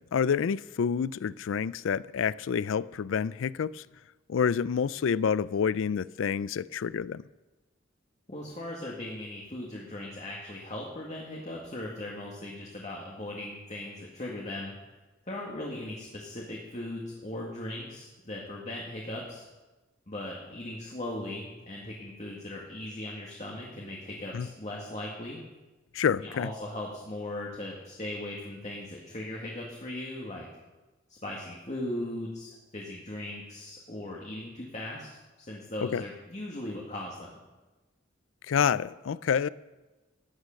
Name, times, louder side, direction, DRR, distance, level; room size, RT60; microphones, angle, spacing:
voice 1, 0.0-3.8 4.3-7.2 24.3-24.5 25.9-26.5 35.8-36.0 38.5-39.5, left 7 dB, 75° left, 0.4 m, -28 dB
voice 2, 8.3-14.7 15.3-19.5 20.1-25.4 26.2-30.5 31.1-37.4, left 1 dB, 35° left, 1.9 m, -38 dB
14.5 x 9.7 x 6.5 m
head